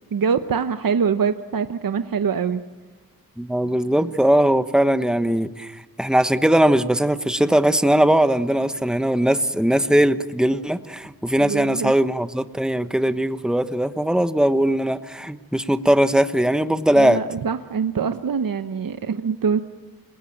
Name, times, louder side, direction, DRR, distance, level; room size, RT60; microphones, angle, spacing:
voice 1, 0.1-2.6 11.3-12.0 16.9-19.6, right 6 dB, 70° right, 10 dB, 0.9 m, -24 dB
voice 2, 3.4-17.2, right 1 dB, ahead, 11 dB, 1.1 m, -20 dB
27.5 x 20.0 x 8.9 m, 1.2 s
wide cardioid pair, 65°, 35 cm